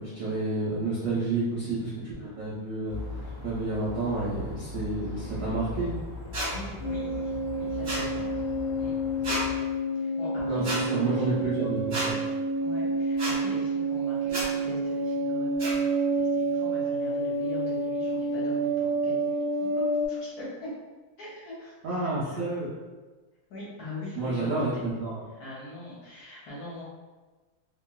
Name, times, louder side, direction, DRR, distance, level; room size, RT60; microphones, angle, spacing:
voice 1, 0.0-5.9 10.5-12.2 21.8-22.7 24.2-25.2, right 2 dB, 85° right, -8 dB, 0.7 m, -30 dB
sound 1, 2.9-9.6, left 3 dB, 15° left, 0.6 m, -39 dB
sound 2, 6.3-6.5 7.8-8.0 9.2-9.4 10.6-10.8 11.9-12.1 13.2-13.3 14.3-14.5 15.6-15.7, right 1 dB, 40° right, 1.1 m, -30 dB
voice 2, 6.5-8.4 8.8-8.9 10.0-11.3 12.6-19.8 20.1-20.7 21.2-22.4 23.5-24.7 25.4-26.8, left 1 dB, 60° left, -7 dB, 1.1 m, -42 dB
sound 3, 6.8-20.1, right 2 dB, 80° left, 0.5 m, -29 dB
2.9 x 2.7 x 2.3 m, 1.3 s
omnidirectional pair, 2.2 m